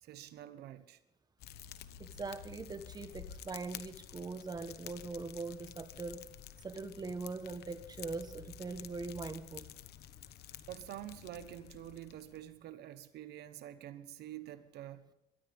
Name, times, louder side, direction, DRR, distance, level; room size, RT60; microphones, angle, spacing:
voice 1, 0.0-1.0 10.7-15.1, right 12 dB, 75° right, 12 dB, 1.2 m, -47 dB
Fire, 1.4-12.6, left 11 dB, 75° left, 1.0 m, -51 dB
voice 2, 2.0-6.2 6.6-9.7, right 4 dB, 25° right, 10 dB, 1.3 m, -42 dB
23.0 x 12.5 x 3.6 m, 0.86 s
cardioid pair, 110°, 17 cm